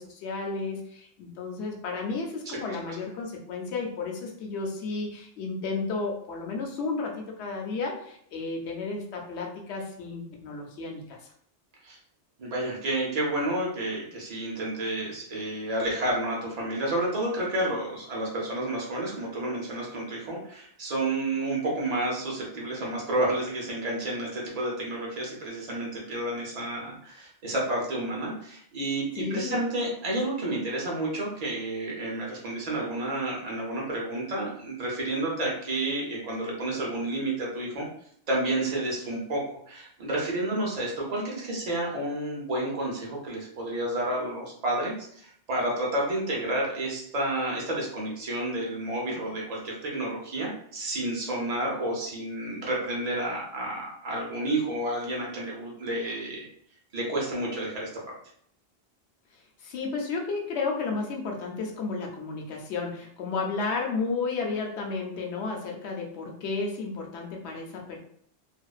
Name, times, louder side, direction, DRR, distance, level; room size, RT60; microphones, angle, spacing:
voice 1, 0.0-11.3 29.2-29.6 59.6-68.0, left 4 dB, 85° left, 0 dB, 0.9 m, -32 dB
voice 2, 12.4-37.9 38.3-56.5 56.9-57.9, right 1 dB, 40° right, -3 dB, 0.7 m, -30 dB
2.5 x 2.1 x 2.3 m, 0.64 s
omnidirectional pair, 1.1 m